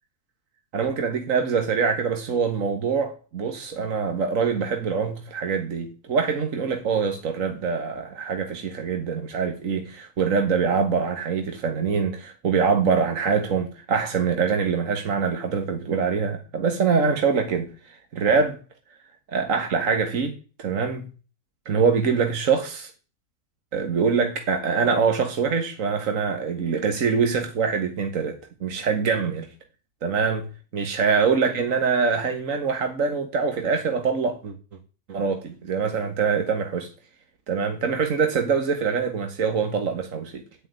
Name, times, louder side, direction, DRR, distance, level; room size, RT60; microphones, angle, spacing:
voice 1, 0.7-17.7 18.1-18.6 19.3-21.1 21.7-22.9 23.7-29.5 30.0-30.5 30.7-34.5 35.1-36.9 37.5-40.4, right 5 dB, 70° right, 1.9 m, -24 dB
10.5 x 9.0 x 9.4 m
omnidirectional pair, 1.5 m